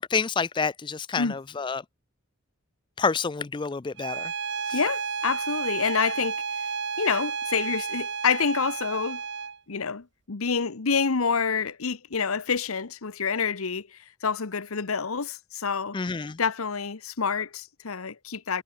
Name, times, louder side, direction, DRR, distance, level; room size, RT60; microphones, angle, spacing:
voice 1, 0.0-1.8 3.0-4.3 4.7-4.8 15.9-16.4, left 5 dB, 20° left, 0.3 m, -28 dB
Bowed string instrument, 4.0-9.6, right 6 dB, 55° right, 1.4 m, -32 dB
voice 2, 4.7-6.4 7.0-9.2 9.7-16.0 16.4-18.6, left 5 dB, 90° left, 1.0 m, -27 dB
head